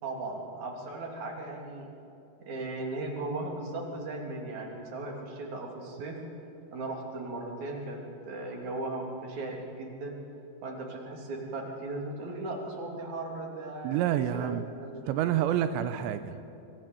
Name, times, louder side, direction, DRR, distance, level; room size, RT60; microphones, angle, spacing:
voice 1, 0.0-1.9 2.5-6.2 6.7-10.1 10.6-14.5 14.8-15.3, right 2 dB, 45° right, 1 dB, 4.0 m, -37 dB
voice 2, 13.8-14.7 15.1-16.3, right 11 dB, 90° right, 11 dB, 3.0 m, -28 dB
25.0 x 18.5 x 8.1 m, 2.9 s
omnidirectional pair, 5.0 m